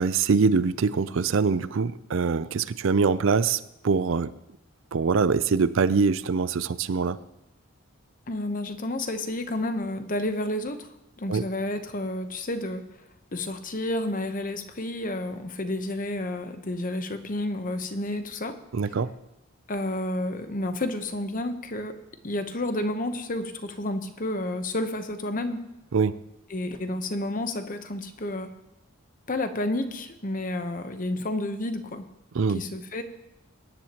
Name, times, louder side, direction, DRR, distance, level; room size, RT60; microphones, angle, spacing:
voice 1, 0.0-4.3 4.9-7.2 11.3-11.4 18.7-19.1 25.9-26.2 32.3-32.6, right 5 dB, 60° right, 15 dB, 0.5 m, -23 dB
voice 2, 8.3-10.9 11.2-12.8 13.3-18.6 19.7-22.0 22.2-25.6 26.5-28.5 29.3-32.1 32.5-33.0, left 1 dB, 40° left, 9 dB, 0.9 m, -30 dB
20.5 x 10.5 x 2.9 m, 0.90 s
head